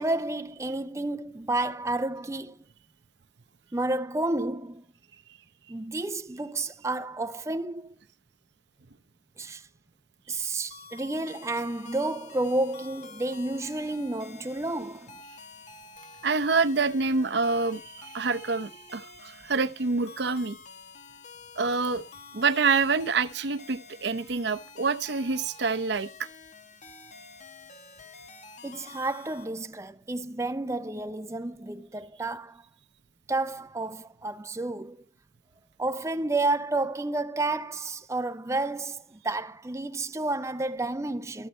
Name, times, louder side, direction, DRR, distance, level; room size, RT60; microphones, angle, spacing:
voice 1, 0.0-2.6 3.7-4.8 5.7-7.9 9.4-9.7 10.3-15.2 28.6-32.6 33.3-35.0 35.8-41.5, right 2 dB, 15° right, 0.5 m, -31 dB
sound 1, 10.7-29.5, left 4 dB, 40° left, 1.1 m, -49 dB
voice 2, 16.2-20.6 21.6-22.0 22.3-26.1, right 4 dB, 60° right, 0.7 m, -26 dB
14.0 x 6.5 x 4.3 m
head